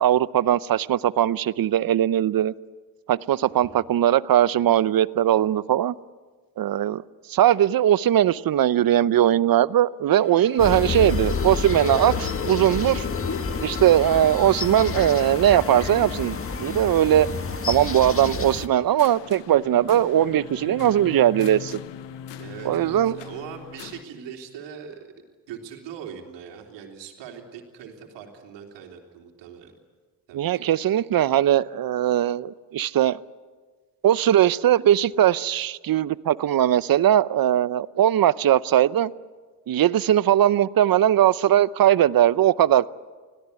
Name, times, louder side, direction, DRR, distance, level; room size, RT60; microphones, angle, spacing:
voice 1, 0.0-2.5 3.1-5.9 6.6-7.0 7.3-13.1 13.6-17.3 17.7-21.8 22.6-23.2 30.3-33.2 34.0-39.1 39.7-42.9, right 11 dB, 55° right, 18 dB, 0.8 m, -20 dB
voice 2, 3.5-3.8 22.4-25.1 25.5-29.7 30.3-30.7, right 7 dB, 85° right, 2 dB, 3.4 m, -41 dB
sound 1, 10.2-24.0, left 11 dB, 85° left, 1.2 m, -40 dB
sound 2, 10.6-18.7, left 4 dB, 30° left, 1.8 m, -29 dB
26.5 x 17.0 x 9.7 m, 1.4 s
supercardioid pair, 65°, 42 cm